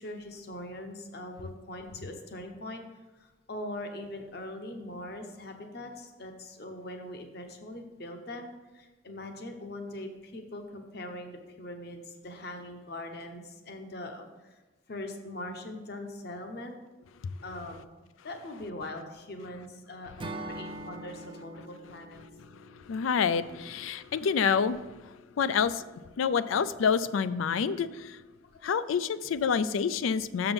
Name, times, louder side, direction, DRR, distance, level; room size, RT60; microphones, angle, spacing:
voice 1, 0.0-2.8 3.2-8.5 8.7-14.6 14.9-16.8 17.4-17.8 18.2-22.2 23.5-23.6 28.4-28.6 28.8-29.0, left 1 dB, 50° left, 5 dB, 0.9 m, -41 dB
Acoustic guitar / Strum, 20.2-24.3, right 2 dB, 25° right, 0.5 m, -44 dB
voice 2, 22.9-24.8 25.4-25.8 26.2-28.2 28.6-30.5, left 6 dB, 80° left, 15 dB, 0.4 m, -27 dB
6.9 x 5.9 x 5.3 m, 1.2 s
head